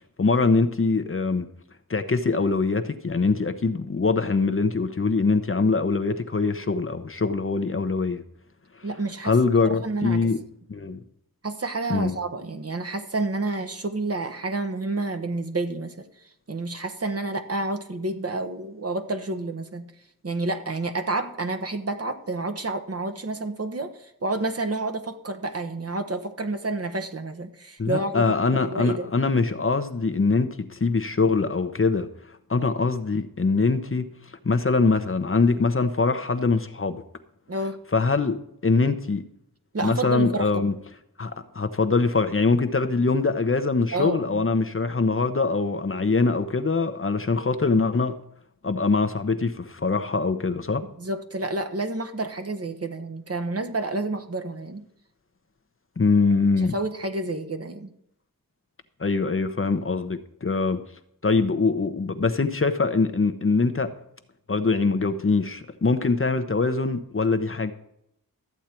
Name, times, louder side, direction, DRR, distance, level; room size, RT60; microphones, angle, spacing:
voice 1, 0.2-1.5 1.9-8.2 9.2-10.4 10.7-11.0 11.9-12.2 27.8-32.1 32.5-34.0 34.4-37.0 37.9-39.2 39.8-40.7 41.2-48.1 48.6-50.8 56.0-56.7 59.0-60.8 61.2-63.9 64.5-67.7, left 4 dB, 35° left, 8 dB, 0.9 m, -23 dB
voice 2, 8.8-9.3 9.7-10.3 11.4-16.1 16.5-19.9 20.2-29.1 32.6-32.7 37.5-37.8 39.7-40.5 43.9-44.5 51.0-54.8 56.6-57.9, right 2 dB, 40° right, 7 dB, 1.3 m, -29 dB
13.5 x 8.2 x 4.5 m, 0.75 s
wide cardioid pair, 70°, 35 cm